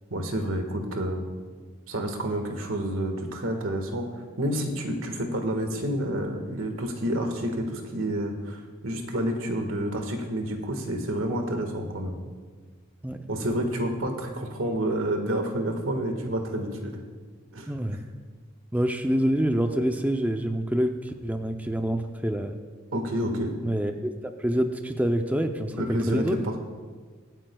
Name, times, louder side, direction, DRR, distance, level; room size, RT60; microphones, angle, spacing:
voice 1, 0.1-1.2 1.9-4.1 4.4-12.2 13.3-16.9 17.5-17.7 22.9-23.5 25.8-26.6, right 1 dB, 90° right, 4 dB, 1.6 m, -29 dB
voice 2, 17.7-18.0 18.7-22.6 23.6-26.4, right 1 dB, 10° right, 5 dB, 0.5 m, -26 dB
23.5 x 9.0 x 2.3 m, 1.5 s
head